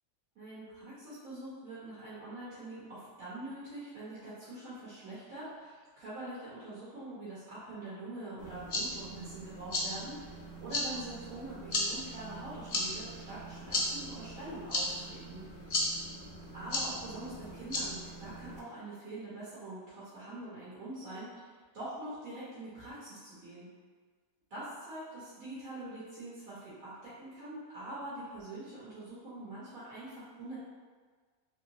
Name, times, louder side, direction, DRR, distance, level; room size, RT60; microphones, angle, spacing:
voice 1, 0.3-15.8 16.5-23.7 24.5-30.6, right 1 dB, 80° right, -11 dB, 1.5 m, -44 dB
sound 1, 8.4-18.6, left 1 dB, 55° left, 0.7 m, -37 dB
3.2 x 2.9 x 2.6 m, 1.5 s
omnidirectional pair, 1.4 m